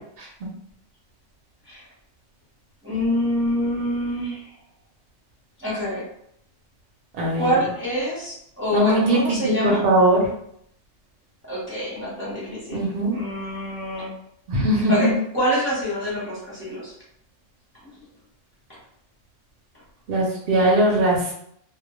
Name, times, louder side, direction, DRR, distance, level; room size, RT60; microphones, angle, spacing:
voice 1, 2.8-4.5 5.6-6.1 7.4-9.9 11.4-14.1 14.9-16.9, equal, 15° right, -7 dB, 0.6 m, -26 dB
voice 2, 7.2-7.5 8.7-10.2 12.7-13.1 14.5-14.9 20.1-21.3, right 1 dB, 60° right, -2 dB, 0.7 m, -20 dB
2.1 x 2.0 x 2.9 m, 0.72 s
omnidirectional pair, 1.3 m